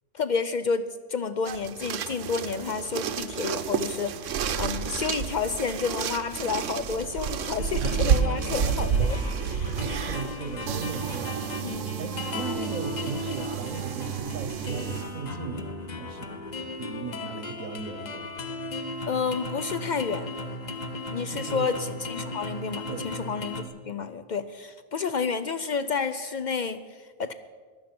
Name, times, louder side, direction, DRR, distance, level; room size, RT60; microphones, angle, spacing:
voice 1, 0.1-9.2 9.5-9.8 11.6-11.9 19.1-20.3 21.1-27.3, left 5 dB, 70° left, 12 dB, 0.4 m, -30 dB
sound 1, 1.5-15.2, right 7 dB, 70° right, 1.0 m, -30 dB
sound 2, 7.1-23.6, left 2 dB, 35° left, 0.9 m, -37 dB
voice 2, 7.8-8.9 9.6-18.3 21.3-21.8 22.9-23.2, right 4 dB, 85° right, 10 dB, 1.5 m, -37 dB
15.0 x 11.5 x 5.9 m, 1.6 s
omnidirectional pair, 1.4 m